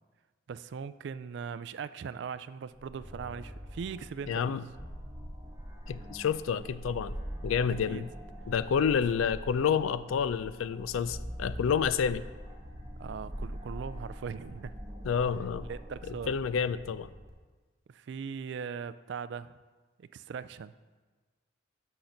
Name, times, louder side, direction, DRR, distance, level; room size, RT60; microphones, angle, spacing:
voice 1, 0.5-4.5 7.9-8.1 13.0-14.7 15.7-16.3 17.9-19.6 20.0-20.7, right 6 dB, 60° right, 15 dB, 0.3 m, -40 dB
sound 1, 2.7-17.3, equal, 15° right, 1.1 m, -43 dB
voice 2, 4.3-4.6 5.9-7.2 7.4-8.1 8.5-12.2 15.0-15.7 16.0-17.1, left 7 dB, 90° left, 15 dB, 0.4 m, -29 dB
6.6 x 6.3 x 5.8 m, 1.3 s
head